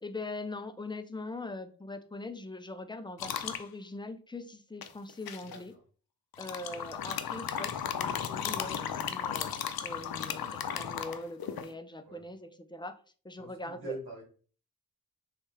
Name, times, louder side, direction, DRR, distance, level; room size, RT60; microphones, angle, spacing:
voice 1, 0.0-5.7 6.4-13.0 13.2-14.0, left 2 dB, 15° left, 9 dB, 0.4 m, -42 dB
sound 1, 3.2-3.6 4.8-5.6 6.3-11.7, left 8 dB, 80° left, 0.5 m, -35 dB
voice 2, 5.4-5.8 6.7-7.0 12.0-12.2 13.4-14.2, right 2 dB, 75° right, -4 dB, 2.0 m, -45 dB
3.3 x 3.2 x 3.2 m, 0.40 s
wide cardioid pair, 80°, 36 cm